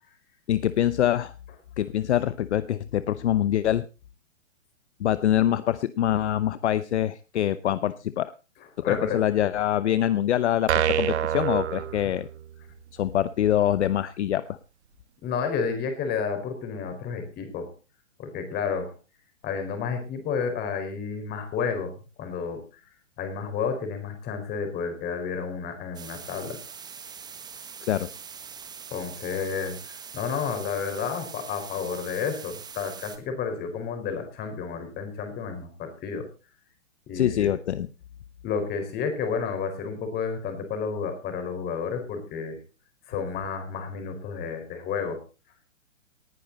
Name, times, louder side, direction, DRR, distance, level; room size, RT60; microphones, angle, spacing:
voice 1, 0.5-1.3 1.8-3.9 5.0-8.3 8.8-12.3 12.9-14.6 27.9-28.1 37.1-37.9, left 11 dB, 60° left, 15 dB, 0.8 m, -24 dB
voice 2, 8.8-9.2 15.2-17.7 18.2-18.9 19.4-22.8 23.2-26.6 28.9-36.3 37.1-37.5 38.4-42.6 43.1-45.2, left 6 dB, 25° left, 6 dB, 4.7 m, -31 dB
sound 1, 10.7-12.6, right 10 dB, 60° right, 1.1 m, -26 dB
sound 2, 25.9-33.2, right 6 dB, 10° right, 1.3 m, -43 dB
19.0 x 10.0 x 4.1 m, 0.33 s
hypercardioid pair, 130°, 39 cm